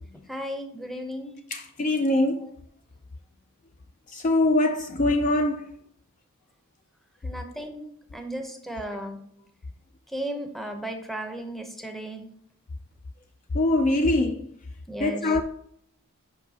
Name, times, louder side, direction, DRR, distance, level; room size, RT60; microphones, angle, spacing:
voice 1, 0.3-1.4 2.4-2.5 7.2-9.2 10.1-12.3 14.9-15.3, right 1 dB, ahead, 0.7 m, -35 dB
voice 2, 1.5-2.5 4.1-5.6 13.5-14.5 15.0-15.4, left 2 dB, 35° left, 0.3 m, -23 dB
7.4 x 5.4 x 2.7 m
head